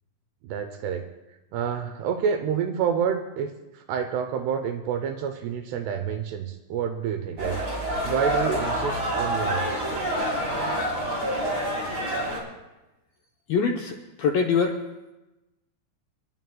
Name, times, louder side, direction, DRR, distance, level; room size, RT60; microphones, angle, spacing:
voice 1, 0.4-1.1 1.5-7.6 8.0-9.9, right 7 dB, 80° right, 6 dB, 2.6 m, -28 dB
sound 1, 7.4-12.4, right 1 dB, 20° right, 3.1 m, -27 dB
voice 2, 13.5-14.8, left 5 dB, 75° left, 0 dB, 2.1 m, -24 dB
29.5 x 11.0 x 2.2 m, 1.0 s
omnidirectional pair, 5.2 m